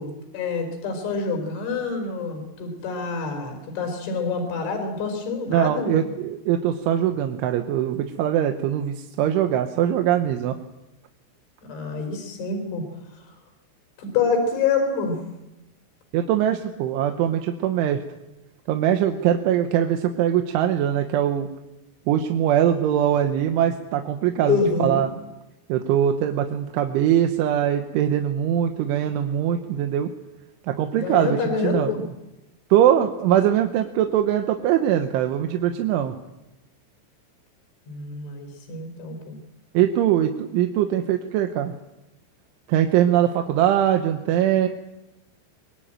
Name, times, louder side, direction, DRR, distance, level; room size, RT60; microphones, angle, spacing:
voice 1, 0.0-6.1 11.7-12.8 14.0-15.2 24.5-25.0 30.9-32.0 37.9-39.4, left 4 dB, 70° left, 4 dB, 6.6 m, -26 dB
voice 2, 5.5-10.6 16.1-18.0 18.7-21.5 22.1-25.1 25.7-30.1 30.7-31.9 32.7-36.1 39.7-41.7 42.7-44.7, right 10 dB, 75° right, 6 dB, 3.5 m, -22 dB
23.5 x 22.5 x 9.0 m, 0.95 s
omnidirectional pair, 5.7 m